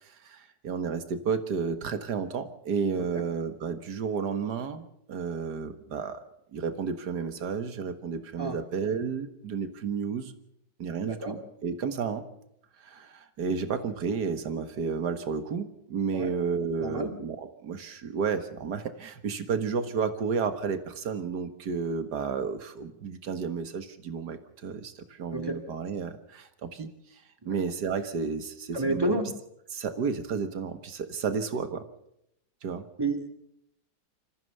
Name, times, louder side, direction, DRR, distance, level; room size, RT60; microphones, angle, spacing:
voice 1, 0.0-6.2 6.5-10.3 10.8-12.3 12.8-29.2 29.7-31.9 32.6-32.8, right 5 dB, 70° right, 9 dB, 2.0 m, -32 dB
voice 2, 11.0-11.4 16.1-16.3 16.8-17.1 25.3-25.6 28.7-29.3 33.0-33.3, right 2 dB, 15° right, 5 dB, 2.1 m, -30 dB
26.0 x 14.5 x 6.8 m, 0.78 s
omnidirectional pair, 1.9 m